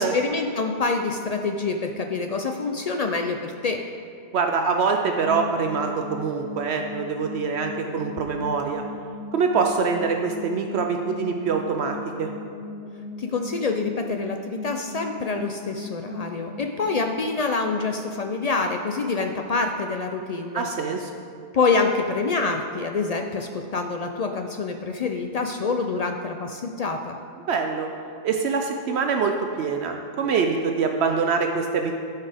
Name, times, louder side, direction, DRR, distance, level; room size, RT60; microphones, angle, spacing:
voice 1, 0.0-3.8 13.2-20.7 21.5-27.2, left 4 dB, 65° left, 4 dB, 0.4 m, -26 dB
voice 2, 4.3-8.8 9.3-12.3 20.5-21.1 27.5-27.9 28.2-32.0, right 5 dB, 70° right, 4 dB, 0.8 m, -24 dB
sound 1, 5.1-18.0, left 3 dB, 80° left, 2.8 m, -38 dB
13.5 x 5.6 x 3.5 m, 2.3 s
omnidirectional pair, 1.2 m